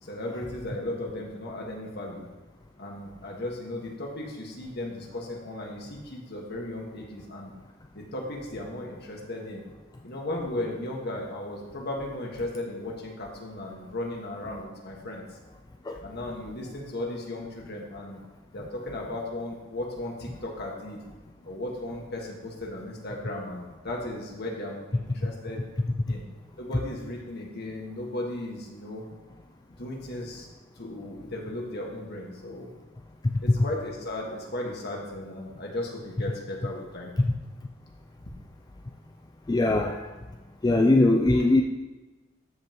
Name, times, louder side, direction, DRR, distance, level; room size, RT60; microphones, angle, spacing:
voice 1, 0.0-2.3 2.8-7.5 7.9-9.6 10.0-15.4 16.0-18.2 18.5-21.0 21.4-25.6 26.1-26.2 26.6-29.1 29.8-30.5 30.7-32.7 33.4-37.1, left 1 dB, 55° left, -1 dB, 1.7 m, -36 dB
voice 2, 39.5-40.1 40.6-41.6, left 2 dB, 20° left, 3 dB, 0.4 m, -21 dB
13.0 x 5.4 x 3.0 m, 1.2 s
head